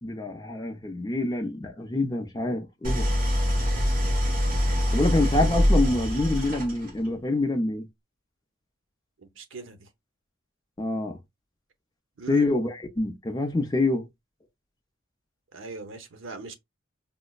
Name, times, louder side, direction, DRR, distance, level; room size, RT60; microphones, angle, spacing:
voice 1, 0.0-3.1 4.9-7.8 10.8-11.2 12.3-14.1, left 2 dB, 20° left, 0.4 m, -26 dB
Idling, 2.8-7.1, equal, 45° right, 1.0 m, -24 dB
voice 2, 9.2-9.9 12.2-12.5 15.5-16.5, right 4 dB, 75° right, 0.7 m, -40 dB
5.0 x 2.1 x 2.3 m
head